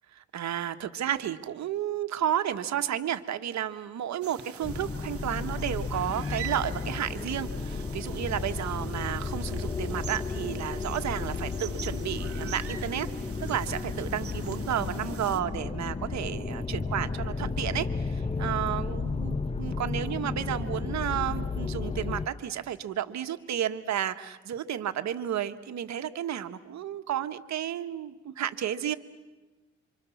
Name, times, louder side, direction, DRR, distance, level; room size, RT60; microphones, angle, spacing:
voice 1, 0.3-13.1 13.4-28.9, right 10 dB, 65° right, 9 dB, 1.5 m, -32 dB
sound 1, 4.2-15.4, right 9 dB, 50° right, 1.5 m, -45 dB
sound 2, 4.6-22.3, left 4 dB, 20° left, 0.9 m, -33 dB
27.0 x 26.0 x 7.2 m, 1.2 s
cardioid pair, 90°, 30 cm